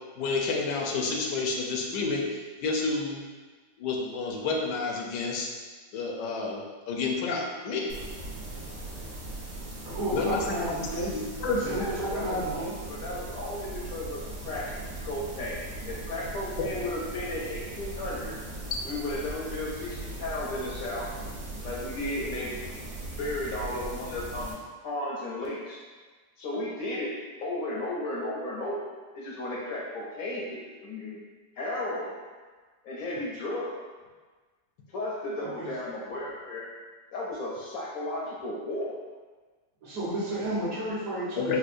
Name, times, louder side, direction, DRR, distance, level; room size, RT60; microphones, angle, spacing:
voice 1, 0.2-3.2 3.8-5.5 5.9-7.9 10.1-11.8 16.6-16.7 41.4-41.6, left 4 dB, 85° left, 0 dB, 1.2 m, -30 dB
sound 1, 7.9-24.5, right 2 dB, 90° right, 1.3 m, -39 dB
voice 2, 9.8-11.2 11.5-12.8 35.4-35.7 39.8-41.6, right 1 dB, 60° right, -9 dB, 1.4 m, -32 dB
voice 3, 11.4-14.7 15.0-18.3 18.8-21.1 21.6-22.6 23.2-24.5 24.8-25.8 26.4-27.1 27.4-31.2 31.6-32.2 32.8-33.7 34.9-36.7 37.1-39.0, left 1 dB, 70° left, -4 dB, 0.9 m, -34 dB
4.3 x 2.2 x 2.5 m, 1.4 s
omnidirectional pair, 1.7 m